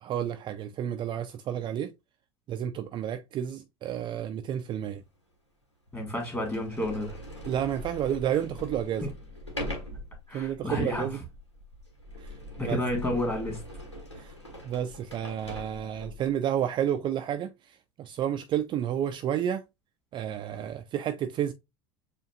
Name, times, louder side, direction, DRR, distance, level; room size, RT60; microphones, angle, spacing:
voice 1, 0.0-1.9 2.5-5.0 7.5-9.1 10.3-11.2 12.2-12.3 12.6-12.8 14.2-14.3 14.6-19.6 20.1-21.5, right 10 dB, 35° right, 0.4 m, -31 dB
Sliding door, 5.0-5.1 5.9-6.0 6.4-16.3, left 1 dB, 85° left, 1.3 m, -42 dB
voice 2, 5.9-7.2 9.0-9.1 10.3-11.1 12.6-13.6, left 1 dB, 15° left, 2.1 m, -30 dB
7.2 x 2.5 x 2.4 m
figure-of-eight pair, 70°, 14 cm